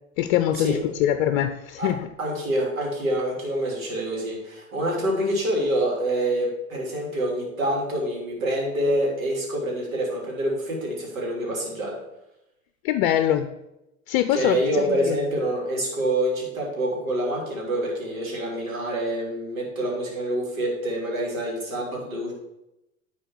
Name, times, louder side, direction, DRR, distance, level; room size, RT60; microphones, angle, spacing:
voice 1, 0.2-2.1 12.8-13.5 14.1-15.2, left 11 dB, 50° left, 10 dB, 0.6 m, -23 dB
voice 2, 2.2-11.9 14.3-22.3, right 1 dB, 80° right, -2 dB, 2.9 m, -26 dB
10.5 x 4.2 x 4.7 m, 0.90 s
hypercardioid pair, 85°, 40 cm